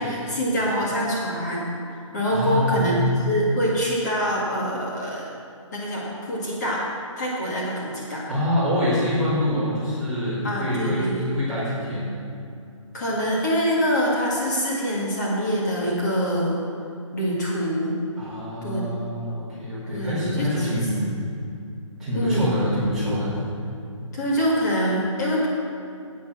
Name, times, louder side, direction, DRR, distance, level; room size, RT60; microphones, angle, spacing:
voice 1, 0.0-1.7 1.9-5.3 5.7-6.9 7.2-8.2 10.4-11.2 12.9-16.6 17.1-18.0 18.6-18.8 19.9-21.2 22.1-22.5 24.1-25.5, equal, 35° left, -5 dB, 2.0 m, -25 dB
voice 2, 2.3-3.0 8.3-12.2 18.2-21.1 22.0-23.5, left 1 dB, ahead, -14 dB, 2.2 m, -26 dB
10.0 x 8.4 x 6.1 m, 2.5 s
hypercardioid pair, 175°, 17 cm